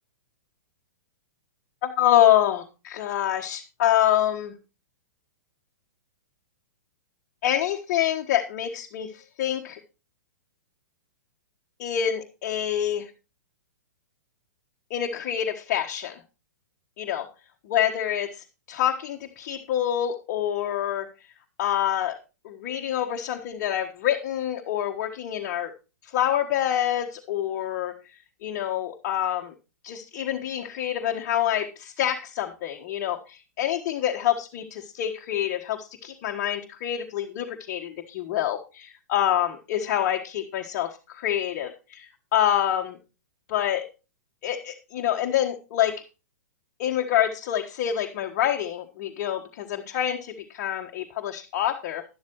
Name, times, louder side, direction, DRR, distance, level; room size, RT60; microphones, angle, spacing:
voice 1, 1.8-4.5 7.4-9.8 11.8-13.1 14.9-16.2 17.0-17.3 17.7-21.1 21.6-22.2 22.4-25.7 26.1-27.9 28.4-29.5 29.8-43.0 43.5-43.8 44.4-46.0 46.8-52.0, left 11 dB, 45° left, 2 dB, 1.3 m, -26 dB
12.0 x 11.5 x 3.0 m, 0.30 s
figure-of-eight pair, 110°, 10 cm